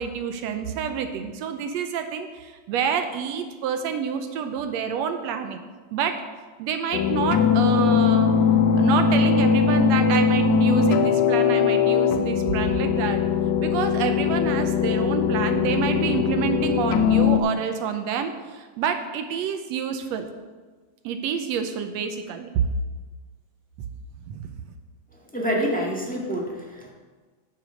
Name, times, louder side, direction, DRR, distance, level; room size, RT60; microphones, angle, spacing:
voice 1, 0.0-5.6 5.9-6.2 6.6-8.3 8.8-13.2 13.6-20.3 21.0-22.6 24.3-24.4, right 7 dB, 75° right, 7 dB, 1.8 m, -28 dB
sound 1, 6.9-17.4, left 6 dB, 80° left, 2.0 m, -20 dB
voice 2, 25.3-26.9, equal, 5° left, -3 dB, 1.0 m, -27 dB
9.9 x 6.8 x 6.4 m, 1.4 s
omnidirectional pair, 3.4 m